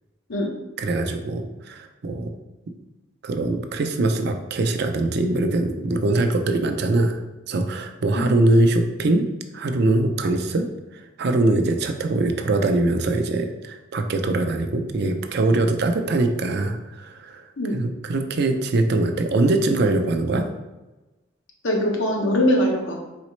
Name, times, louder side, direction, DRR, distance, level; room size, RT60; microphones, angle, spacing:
voice 1, 0.8-2.3 3.2-7.2 7.5-9.3 9.5-17.4 17.7-20.5, right 2 dB, 55° right, 6 dB, 0.4 m, -22 dB
voice 2, 21.6-23.0, left 1 dB, 65° left, 0 dB, 0.9 m, -21 dB
4.1 x 4.0 x 3.1 m, 1.1 s
head